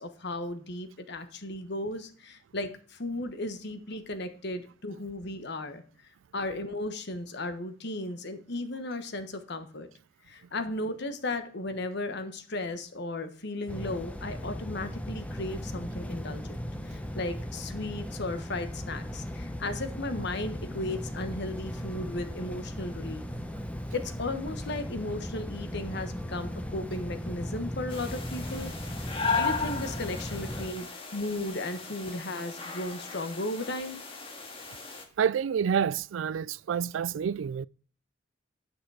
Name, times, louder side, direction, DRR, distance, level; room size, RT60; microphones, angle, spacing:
voice 1, 0.0-5.8 6.3-9.9 10.3-23.2 23.9-28.7 29.0-34.0, left 2 dB, 60° left, 1.2 m, -35 dB
sound 1, 13.7-30.7, equal, 5° left, 0.9 m, -37 dB
sound 2, 27.9-35.0, left 4 dB, 30° left, 1.8 m, -36 dB
voice 2, 35.2-37.7, right 7 dB, 75° right, 0.3 m, -28 dB
10.5 x 6.0 x 4.8 m
head